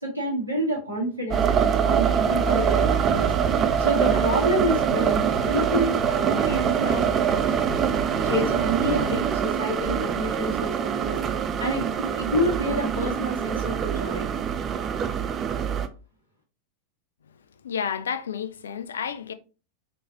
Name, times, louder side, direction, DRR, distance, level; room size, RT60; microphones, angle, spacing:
voice 1, 0.0-3.3 3.8-7.1 8.2-11.2 11.6-14.2, equal, 90° right, 1.7 m, -28 dB
sound 1, 1.3-15.9, right 8 dB, 25° right, 0.4 m, -24 dB
sound 2, 2.4-9.2, left 1 dB, 40° left, 2.1 m, -35 dB
voice 2, 17.6-19.3, left 7 dB, 65° left, 0.4 m, -30 dB
4.2 x 3.2 x 2.8 m
figure-of-eight pair, 90°, 0 cm